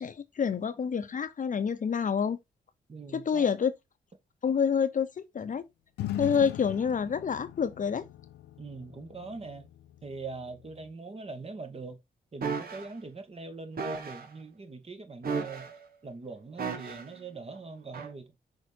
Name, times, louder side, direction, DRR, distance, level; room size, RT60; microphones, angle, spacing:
voice 1, 0.0-2.4 3.1-3.7 4.4-5.6 6.2-8.0, left 6 dB, 50° left, 0.8 m, -28 dB
voice 2, 2.9-3.5 8.6-9.7 10.0-12.0 12.3-15.7 16.0-18.3, right 3 dB, 35° right, 1.6 m, -42 dB
sound 1, 6.0-10.9, left 13 dB, 90° left, 0.6 m, -40 dB
sound 2, 12.4-12.9 13.8-14.3 15.2-15.9 16.6-17.2 17.9-18.1, right 5 dB, 60° right, 1.5 m, -34 dB
5.8 x 3.7 x 4.4 m
supercardioid pair, 55°, 17 cm